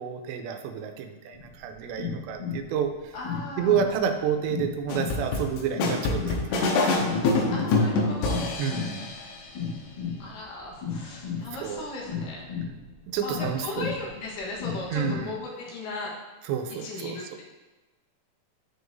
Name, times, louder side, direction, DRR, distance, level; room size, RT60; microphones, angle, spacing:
voice 1, 0.0-3.1 3.6-7.1 8.6-9.1 11.6-11.9 13.1-13.9 14.9-15.3 16.4-17.2, right 8 dB, 85° right, 5 dB, 2.9 m, -30 dB
sound 1, 1.3-15.4, left 6 dB, 45° left, 1.9 m, -35 dB
voice 2, 3.1-4.0 7.5-8.5 10.2-12.5 13.2-16.1 16.7-17.4, left 2 dB, 65° left, -3 dB, 2.5 m, -37 dB
sound 2, 4.9-9.2, left 3 dB, 85° left, 3.1 m, -25 dB
13.0 x 4.8 x 2.6 m, 1.2 s
omnidirectional pair, 5.0 m